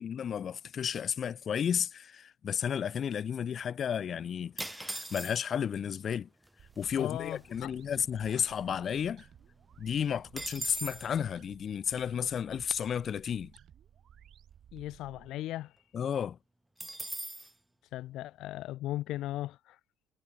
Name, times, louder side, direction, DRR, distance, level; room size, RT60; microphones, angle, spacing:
voice 1, 0.0-6.3 6.8-9.3 9.8-13.5 15.9-16.4, left 8 dB, 40° left, 1.0 m, -33 dB
sound 1, 4.6-5.7 6.5-6.6 6.7-7.1 7.5-9.0 9.3-9.4 9.7-11.1 16.8-17.5, right 1 dB, 10° right, 5.9 m, -40 dB
sound 2, 6.6-15.3, right 9 dB, 45° right, 7.4 m, -57 dB
voice 2, 7.0-7.7 14.7-15.7 17.9-19.8, left 15 dB, 65° left, 1.1 m, -37 dB
cardioid pair, 125°, 0 cm